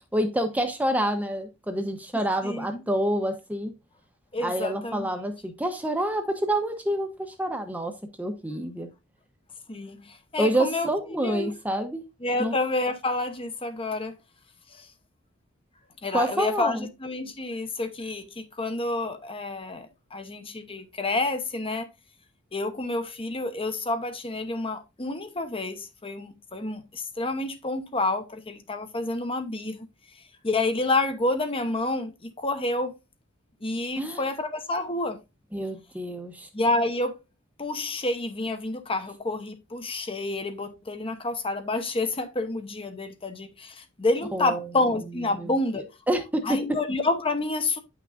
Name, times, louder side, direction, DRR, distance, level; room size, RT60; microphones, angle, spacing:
voice 1, 0.1-3.7 4.4-7.9 8.2-8.9 10.4-12.0 12.4-12.5 16.1-16.9 34.0-34.2 35.5-36.5 44.3-44.7 45.4-45.5 46.1-46.8, right 1 dB, 10° right, 0.9 m, -27 dB
voice 2, 4.3-5.1 9.7-11.5 12.2-14.2 14.7-14.9 16.0-21.9 22.5-29.9 30.4-32.9 33.6-35.2 36.5-37.2 37.6-45.9 46.4-47.8, left 2 dB, 25° left, 1.0 m, -29 dB
9.6 x 5.9 x 2.6 m
head